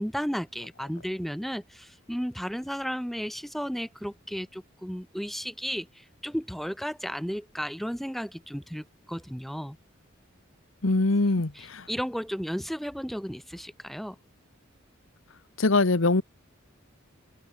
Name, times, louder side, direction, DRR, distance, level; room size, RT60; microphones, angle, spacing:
voice 1, 0.0-5.9 6.2-9.8 11.6-14.2, equal, ahead, 2.5 m, -34 dB
voice 2, 10.8-11.9 15.6-16.2, left 2 dB, 80° left, 1.3 m, -23 dB
head